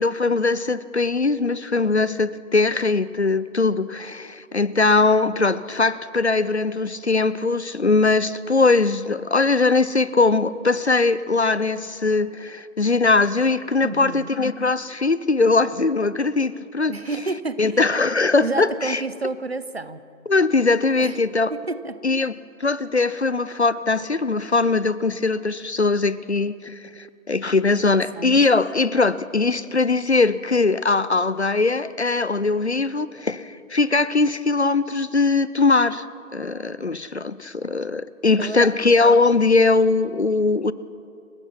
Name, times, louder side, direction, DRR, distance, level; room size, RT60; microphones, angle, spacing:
voice 1, 0.0-16.9 17.6-19.0 20.3-21.5 22.0-22.3 22.6-36.1 36.3-40.7, left 3 dB, 50° left, 17 dB, 0.7 m, -20 dB
voice 2, 13.8-14.3 16.9-17.9 18.4-20.0 21.0-22.0 27.7-27.8 28.1-28.4 38.4-38.7, right 3 dB, 50° right, 14 dB, 1.0 m, -30 dB
29.0 x 17.0 x 5.8 m, 2.5 s
figure-of-eight pair, 170°, 42 cm